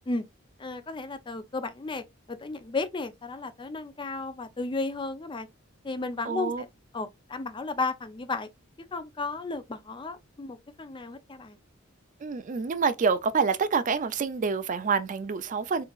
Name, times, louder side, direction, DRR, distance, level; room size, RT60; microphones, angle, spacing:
voice 1, 0.6-5.5 5.8-6.7 6.9-8.5 8.9-11.6, left 3 dB, 25° left, 0.5 m, -34 dB
voice 2, 6.2-6.6 12.2-15.8, right 5 dB, 40° right, 0.4 m, -27 dB
3.8 x 3.7 x 2.4 m
head